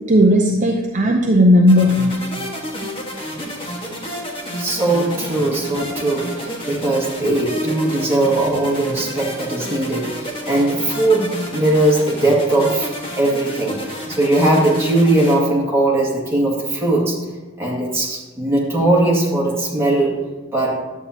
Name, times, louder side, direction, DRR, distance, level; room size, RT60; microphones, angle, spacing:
voice 1, 0.1-2.2, equal, 35° right, 1 dB, 0.6 m, -14 dB
sound 1, 1.7-15.4, equal, 25° left, 1.5 m, -30 dB
voice 2, 4.6-17.2 17.6-20.8, right 2 dB, 10° right, -5 dB, 2.0 m, -19 dB
11.0 x 8.1 x 2.9 m, 1.3 s
head